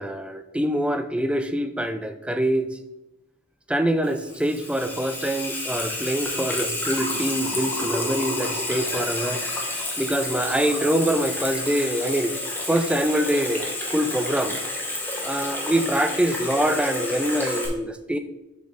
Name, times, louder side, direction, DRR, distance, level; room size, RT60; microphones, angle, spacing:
voice 1, 0.0-2.7 3.7-12.3 12.7-14.5 15.2-18.2, right 1 dB, 5° right, 9 dB, 0.4 m, -25 dB
Water tap faucet / Sink (filling or washing), 4.0-17.7, left 1 dB, 10° left, 1.3 m, -30 dB
7.0 x 4.0 x 5.0 m, 0.93 s
head